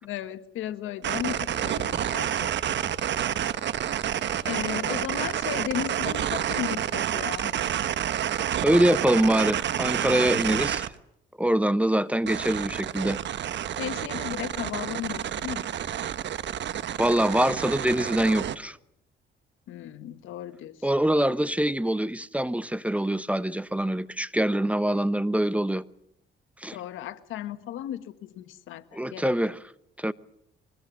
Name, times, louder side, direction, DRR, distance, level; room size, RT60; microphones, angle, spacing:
voice 1, 0.0-2.8 4.4-7.5 13.8-15.7 19.7-20.8 26.7-29.5, left 11 dB, 85° left, 1.7 m, -35 dB
sound 1, 1.0-10.9 12.3-18.6, right 10 dB, 65° right, 1.2 m, -29 dB
voice 2, 8.6-10.9 11.4-13.2 17.0-18.8 20.8-25.8 26.6-26.8 28.9-29.6 30.0-30.1, right 1 dB, 5° right, 0.9 m, -24 dB
24.0 x 20.5 x 7.4 m
cardioid pair, 90°, 20 cm